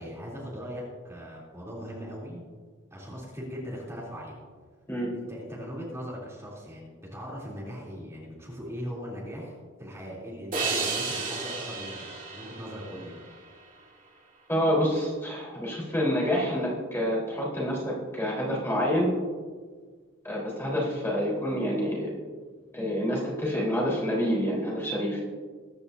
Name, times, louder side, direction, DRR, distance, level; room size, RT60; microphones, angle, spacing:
voice 1, 0.0-2.5 2.9-4.4 5.1-13.2, equal, 15° right, -7 dB, 3.3 m, -39 dB
sound 1, 10.5-13.8, right 4 dB, 45° right, 2.9 m, -33 dB
voice 2, 14.5-19.1 20.2-22.1 22.7-25.2, equal, 10° left, -5 dB, 4.2 m, -27 dB
22.5 x 10.5 x 2.8 m, 1.5 s
head